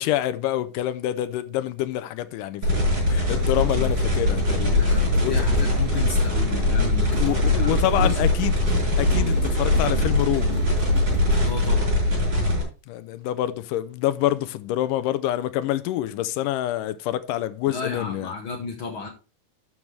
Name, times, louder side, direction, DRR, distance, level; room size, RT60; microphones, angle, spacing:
voice 1, 0.0-4.7 5.2-5.3 7.2-8.6 9.0-10.6 12.9-18.3, left 13 dB, 80° left, 2.1 m, -26 dB
sound 1, 2.6-12.6, left 1 dB, 30° right, 6.7 m, -21 dB
sound 2, 2.9-11.6, right 2 dB, 25° left, 1.3 m, -39 dB
voice 2, 4.6-8.2 9.1-9.4 11.4-11.9 17.7-19.1, left 4 dB, 65° left, 1.3 m, -33 dB
12.5 x 6.2 x 3.3 m
omnidirectional pair, 4.1 m